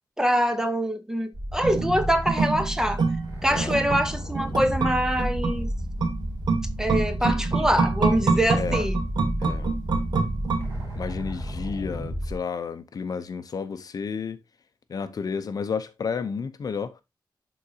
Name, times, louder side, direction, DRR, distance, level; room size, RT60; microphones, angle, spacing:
voice 1, 0.2-3.0 3.4-5.7 6.8-9.0, equal, 5° right, 0.6 m, -24 dB
sound 1, 1.3-12.4, equal, 35° right, 2.7 m, -32 dB
sound 2, 1.6-11.1 11.4-11.5, right 4 dB, 60° right, 1.2 m, -27 dB
voice 2, 7.2-7.7 8.6-8.8 9.4-9.7 11.0-14.4 14.9-17.0, left 5 dB, 50° left, 0.6 m, -32 dB
11.5 x 3.9 x 2.7 m
wide cardioid pair, 175°, 8 cm